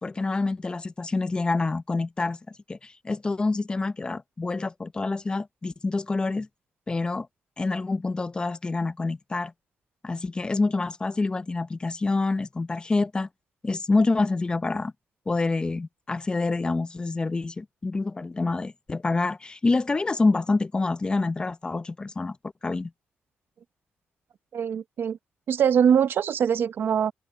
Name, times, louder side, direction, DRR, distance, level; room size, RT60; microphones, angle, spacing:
voice 1, 0.0-2.4 2.7-6.5 6.9-7.3 7.6-9.5 10.0-13.3 13.6-14.9 15.3-22.4 22.6-22.9, left 3 dB, 20° left, 0.7 m, -27 dB
voice 2, 24.5-25.2 25.5-27.1, right 8 dB, 60° right, 0.8 m, -22 dB
open air
cardioid pair, 125°, 4 cm